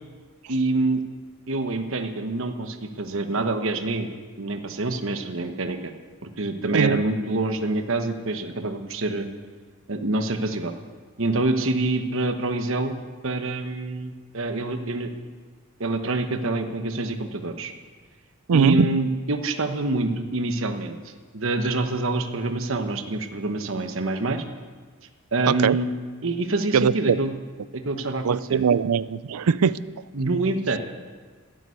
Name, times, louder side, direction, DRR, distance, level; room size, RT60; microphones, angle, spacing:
voice 1, 0.5-1.0 1.5-4.1 4.4-5.9 6.2-9.3 9.9-10.7 11.2-13.0 13.2-15.1 15.8-17.7 18.5-24.4 25.3-25.9 26.2-27.3 27.7-28.6 30.1-30.8, right 2 dB, 60° right, 7 dB, 1.1 m, -26 dB
voice 2, 18.5-18.9 25.5-25.8 26.7-27.2 28.2-29.8, right 6 dB, 85° right, 18 dB, 0.5 m, -21 dB
12.5 x 9.1 x 9.5 m, 1.5 s
head